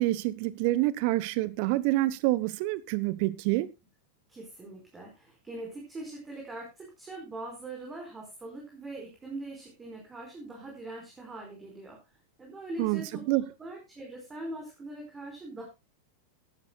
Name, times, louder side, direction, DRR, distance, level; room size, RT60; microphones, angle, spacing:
voice 1, 0.0-3.7 12.8-13.4, right 18 dB, 45° right, 1.0 m, -27 dB
voice 2, 4.3-12.0 12.4-15.7, right 2 dB, 15° right, 4.7 m, -42 dB
17.0 x 11.5 x 2.3 m
figure-of-eight pair, 90°, 0 cm